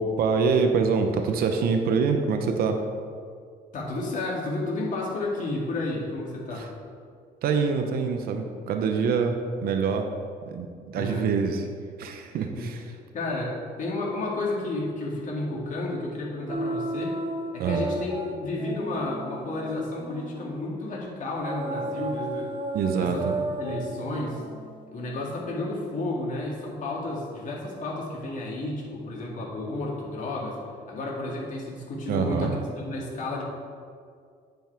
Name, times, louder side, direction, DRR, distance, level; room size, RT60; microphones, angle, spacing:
voice 1, 0.0-2.8 6.5-6.7 7.4-10.1 10.5-10.7 10.9-11.6 12.0-12.8 17.6-17.8 22.7-23.3 32.1-32.5, right 5 dB, 65° right, 5 dB, 0.7 m, -25 dB
voice 2, 3.7-6.7 10.9-11.3 12.4-12.7 13.1-17.2 17.5-22.5 23.0-23.3 23.6-24.4 24.9-30.6 30.9-33.4, left 2 dB, 50° left, -3 dB, 2.1 m, -31 dB
sound 1, 16.5-20.7 21.4-26.2, right 2 dB, 30° right, 0.8 m, -34 dB
9.2 x 5.4 x 4.5 m, 2.2 s
cardioid pair, 110°, 17 cm